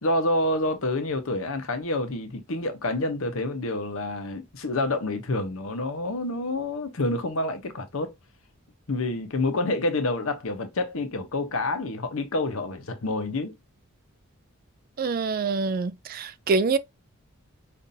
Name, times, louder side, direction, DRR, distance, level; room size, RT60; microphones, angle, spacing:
voice 1, 0.0-8.2 8.9-13.5, left 2 dB, 70° left, 0.8 m, -28 dB
voice 2, 15.0-16.8, right 4 dB, 40° right, 0.3 m, -25 dB
5.4 x 2.5 x 2.6 m
head